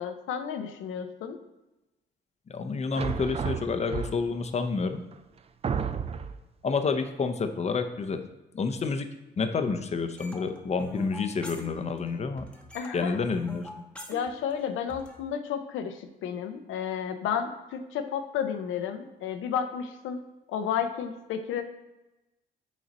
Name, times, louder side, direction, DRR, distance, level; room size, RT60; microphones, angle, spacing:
voice 1, 0.0-1.4 12.7-13.2 14.1-20.2 20.5-21.6, left 8 dB, 85° left, 8 dB, 0.7 m, -32 dB
voice 2, 2.5-5.0 6.6-8.2 8.5-9.1 9.4-12.4 12.9-13.8, left 4 dB, 35° left, 8 dB, 0.6 m, -29 dB
sound 1, 2.9-4.5 5.1-5.2 5.6-6.5, right 6 dB, 30° right, 0.3 m, -31 dB
sound 2, 10.2-12.1 12.4-15.2, equal, 5° left, 0.8 m, -44 dB
6.3 x 3.9 x 4.1 m, 1.0 s
cardioid pair, 90°, 20 cm